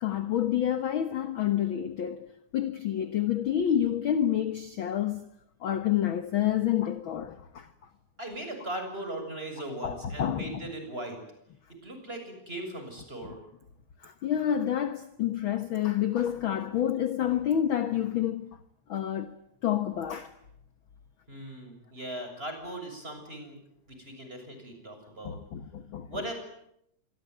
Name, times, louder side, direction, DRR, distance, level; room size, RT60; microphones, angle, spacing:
voice 1, 0.0-5.3 5.6-7.7 9.8-10.7 13.2-13.3 14.0-18.6 18.9-19.3 19.6-20.3 25.2-26.3, left 10 dB, 55° left, 1.7 m, -29 dB
voice 2, 8.2-11.2 11.8-13.4 21.3-23.6 23.9-25.4 26.1-26.3, right 1 dB, 20° right, 7.2 m, -39 dB
27.0 x 23.0 x 9.4 m
omnidirectional pair, 3.3 m